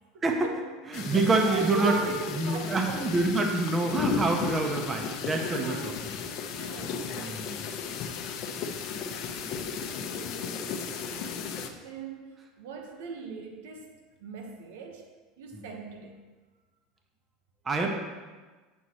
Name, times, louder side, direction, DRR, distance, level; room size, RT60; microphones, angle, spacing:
voice 1, 0.1-0.6 1.0-3.1 5.3-6.0 6.6-7.5 9.4-10.8 11.3-15.0 15.4-16.2 17.7-17.9, right 4 dB, 80° right, 3 dB, 1.1 m, -40 dB
sound 1, 0.9-11.7, left 5 dB, 55° left, 0.8 m, -35 dB
voice 2, 0.9-2.0 2.3-5.9 7.1-7.6 15.5-15.6 17.6-17.9, right 2 dB, 25° right, 2 dB, 1.1 m, -26 dB
9.1 x 6.4 x 3.0 m, 1.3 s
supercardioid pair, 105°, 0 cm